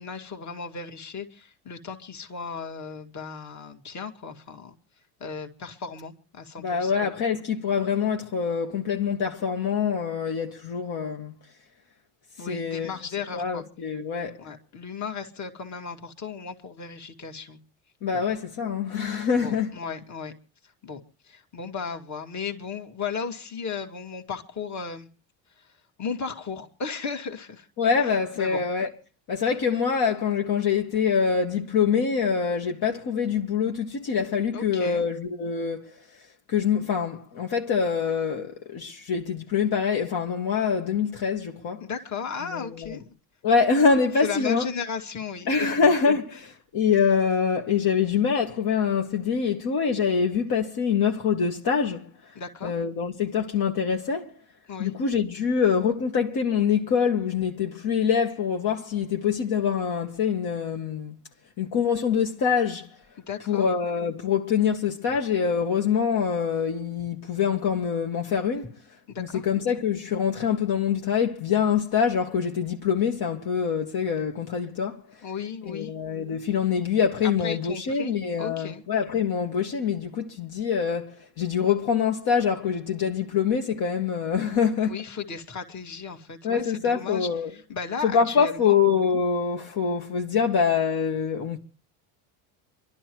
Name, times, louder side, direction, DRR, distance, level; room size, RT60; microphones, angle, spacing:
voice 1, 0.0-4.7 5.2-6.9 12.4-13.6 14.4-17.6 19.3-20.3 20.8-25.1 26.0-27.7 28.4-28.6 34.5-35.0 41.8-43.0 44.2-45.7 52.3-52.7 54.7-54.9 63.3-63.7 69.1-69.4 75.2-75.9 77.2-78.8 84.8-88.8, left 5 dB, 40° left, 2.4 m, -35 dB
voice 2, 6.6-11.3 12.4-12.9 13.3-14.4 18.0-19.7 27.8-28.9 29.3-36.0 36.5-41.8 42.4-43.0 43.4-44.7 45.5-52.1 52.6-54.4 54.8-61.2 61.6-62.9 63.5-68.8 69.2-75.0 75.7-85.0 86.4-87.5 88.0-91.6, left 6 dB, 55° left, 2.0 m, -25 dB
27.5 x 12.0 x 3.1 m
supercardioid pair, 95°, 45 cm